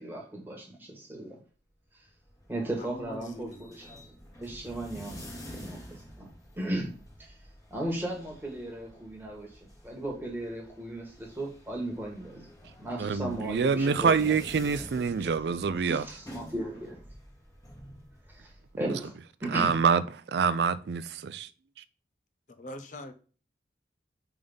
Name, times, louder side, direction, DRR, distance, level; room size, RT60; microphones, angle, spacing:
voice 1, 0.0-1.4 1.9-2.1 2.5-5.3 5.5-6.3 6.5-6.9 7.2-7.4 7.7-17.0 18.3-19.8, right 1 dB, 10° right, 1.6 m, -37 dB
sound 1, 2.0-19.1, equal, 20° left, 1.3 m, -49 dB
voice 2, 2.8-3.7 22.5-23.1, left 1 dB, 40° left, 0.7 m, -43 dB
voice 3, 13.0-16.1 19.5-20.0 20.3-21.5, right 5 dB, 65° right, 0.4 m, -26 dB
5.3 x 3.6 x 5.3 m
head